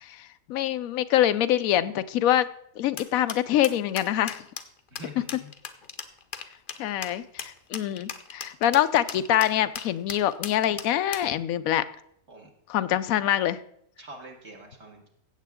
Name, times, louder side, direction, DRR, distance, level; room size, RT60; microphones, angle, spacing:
voice 1, 0.0-2.5 2.8-4.4 6.8-11.8 12.7-13.6, left 12 dB, 90° left, 13 dB, 1.0 m, -25 dB
sound 1, 3.0-11.3, left 6 dB, 45° left, 0.8 m, -37 dB
voice 2, 4.9-5.5 12.3-12.5 14.0-15.1, right 1 dB, 55° right, 1 dB, 2.1 m, -45 dB
15.5 x 7.5 x 3.6 m, 0.70 s
omnidirectional pair, 1.4 m